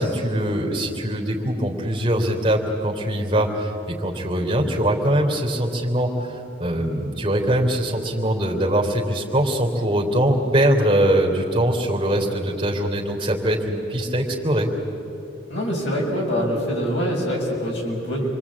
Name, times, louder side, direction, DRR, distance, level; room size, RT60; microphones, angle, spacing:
voice 1, 0.0-14.7, right 1 dB, 25° right, 0 dB, 3.4 m, -22 dB
voice 2, 15.5-18.3, equal, 75° left, -2 dB, 6.6 m, -24 dB
28.0 x 23.5 x 8.7 m, 3.0 s
head